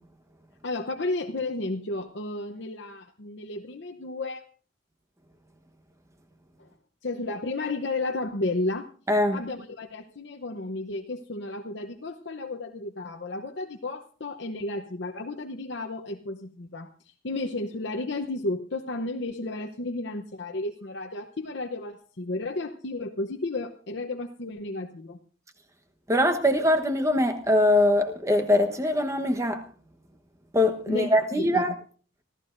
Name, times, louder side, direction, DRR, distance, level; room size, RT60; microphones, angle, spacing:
voice 1, 0.6-4.5 6.6-6.7 7.0-8.9 9.3-25.2 30.9-31.6, left 2 dB, 60° left, 0.8 m, -33 dB
voice 2, 9.1-9.4 26.1-29.6 30.5-31.7, left 1 dB, 15° right, 1.1 m, -22 dB
26.0 x 14.5 x 2.6 m
head